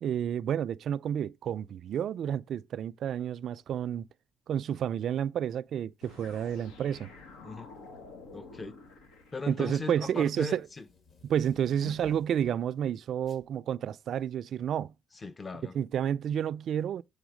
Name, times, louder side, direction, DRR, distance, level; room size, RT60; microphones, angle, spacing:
voice 1, 0.0-4.0 4.5-7.1 9.5-10.7 11.2-14.9 15.7-17.0, right 9 dB, 60° right, 0.3 m, -30 dB
sound 1, 6.0-9.9, left 3 dB, 85° left, 1.4 m, -50 dB
sound 2, 6.3-6.6 7.6-8.0 8.4-12.6 13.2-13.5, left 3 dB, 45° left, 1.7 m, -57 dB
voice 2, 8.3-8.8 9.3-10.8 11.8-11.9 15.1-15.8, left 3 dB, 30° left, 0.7 m, -39 dB
7.2 x 3.4 x 5.0 m
cardioid pair, 85°, 0 cm